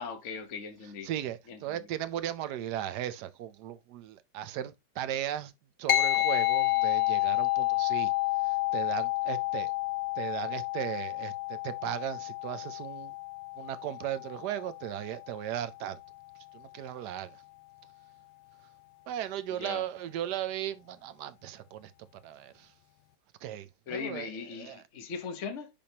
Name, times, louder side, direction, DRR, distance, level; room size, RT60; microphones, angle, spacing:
voice 1, 0.0-1.1 1.5-1.8 19.6-19.8 23.9-25.7, left 6 dB, 45° left, 1.2 m, -39 dB
voice 2, 1.0-5.5 5.8-8.1 8.4-9.7 10.2-13.1 13.6-16.0 16.5-17.4 19.1-21.9 22.2-22.7 23.4-24.8, right 11 dB, 70° right, 1.2 m, -37 dB
sound 1, 5.9-15.6, left 17 dB, 70° left, 0.6 m, -30 dB
10.5 x 3.5 x 2.8 m
omnidirectional pair, 1.9 m